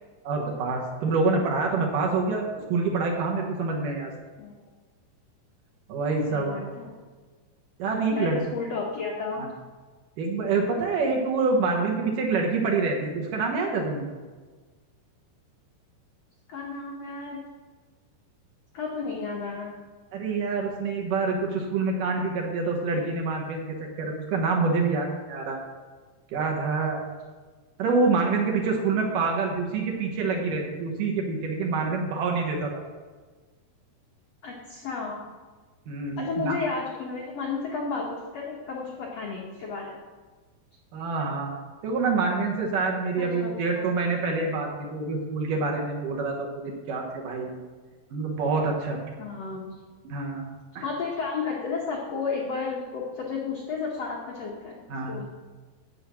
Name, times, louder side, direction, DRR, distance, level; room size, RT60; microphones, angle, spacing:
voice 1, 0.2-2.4 2.7-4.1 5.9-6.5 7.8-8.4 9.4-9.5 10.2-14.0 20.1-25.6 26.3-27.0 27.8-32.8 35.9-36.6 40.9-41.5 41.8-47.6 48.1-49.0 50.0-50.5 50.8-50.9 54.9-55.2, right 4 dB, 65° right, 0 dB, 2.4 m, -26 dB
voice 2, 6.3-6.9 8.1-9.5 16.5-17.4 18.7-19.7 34.4-35.2 36.2-39.9 43.2-43.9 49.2-49.7 50.8-55.3, left 4 dB, 80° left, -2 dB, 1.4 m, -32 dB
8.5 x 8.3 x 6.1 m, 1.4 s
omnidirectional pair, 4.7 m